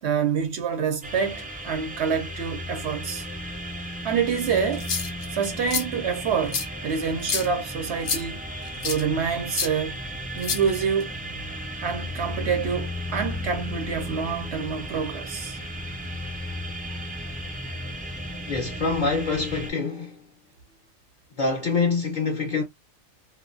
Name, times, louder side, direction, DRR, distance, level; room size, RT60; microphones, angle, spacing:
voice 1, 0.0-3.3 4.0-4.9 5.3-8.4 8.8-10.0 10.4-11.2 11.8-15.6, right 6 dB, 65° right, 0.8 m, -27 dB
sound 1, 1.0-19.7, equal, 15° right, 0.3 m, -35 dB
sound 2, 4.7-5.3 5.7-5.8 6.5-6.6 7.2-7.5 8.0-8.2 8.8-9.0 9.5-9.7 10.4-11.0, left 6 dB, 65° left, 1.0 m, -28 dB
voice 2, 18.5-20.2 21.4-22.6, left 4 dB, 50° left, 0.6 m, -25 dB
2.4 x 2.2 x 2.4 m
omnidirectional pair, 1.3 m